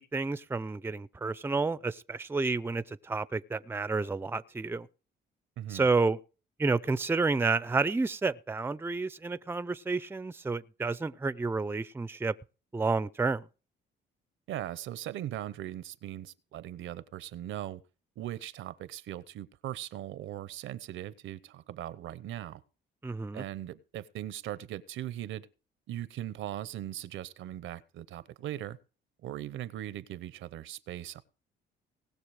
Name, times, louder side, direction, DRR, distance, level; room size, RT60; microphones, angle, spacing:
voice 1, 0.0-4.9 5.7-6.2 6.6-12.3 12.7-13.5 23.0-23.4, right 3 dB, 10° right, 0.5 m, -30 dB
voice 2, 5.6-5.9 14.5-17.8 18.2-22.6 23.3-25.5 25.9-28.8 29.2-31.2, right 12 dB, 80° right, 0.8 m, -39 dB
19.0 x 6.8 x 4.9 m
cardioid pair, 90°, 20 cm